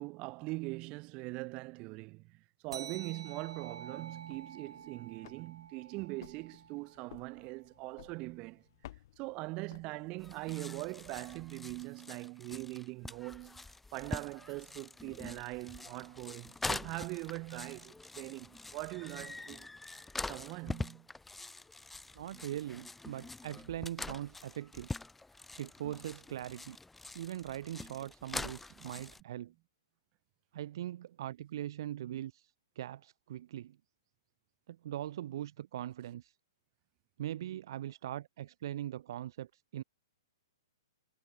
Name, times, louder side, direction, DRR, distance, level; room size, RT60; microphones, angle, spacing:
voice 1, 0.0-8.7 9.2-19.7 20.3-21.1 28.8-28.9, right 24 dB, 35° right, 1.7 m, -42 dB
sound 1, 2.7-7.6, right 6 dB, 80° right, 1.9 m, -50 dB
sound 2, 4.1-10.4, left 14 dB, 50° left, 3.4 m, -57 dB
sound 3, 10.2-29.2, left 2 dB, 5° left, 1.6 m, -44 dB
voice 2, 22.1-24.9 25.6-26.8 27.1-29.5 30.5-33.8 34.7-36.3 37.2-39.8, right 12 dB, 55° right, 0.9 m, -41 dB
hypercardioid pair, 130°, 3 cm